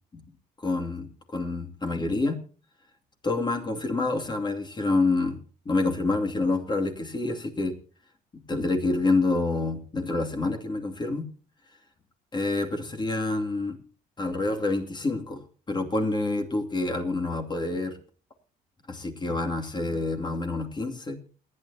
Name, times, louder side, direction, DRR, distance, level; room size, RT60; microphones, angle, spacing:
voice 1, 0.6-2.4 3.2-5.4 5.6-7.7 8.5-11.2 12.3-13.8 14.2-15.4 15.7-18.0 18.9-21.2, left 2 dB, 25° left, 3 dB, 2.6 m, -27 dB
28.5 x 9.7 x 2.9 m, 0.38 s
cardioid pair, 110°, 17 cm